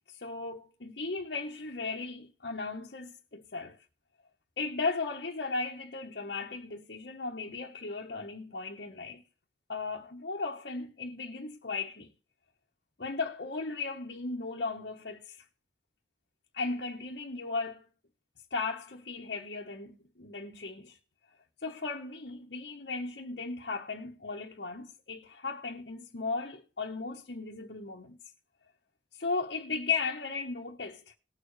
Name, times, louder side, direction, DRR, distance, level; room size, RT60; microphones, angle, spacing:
voice 1, 0.0-3.8 4.6-9.2 9.7-12.1 13.0-15.4 16.5-17.9 18.5-21.0 21.6-28.2 29.2-31.1, left 4 dB, 65° left, 1.1 m, -36 dB
19.0 x 7.0 x 3.2 m
head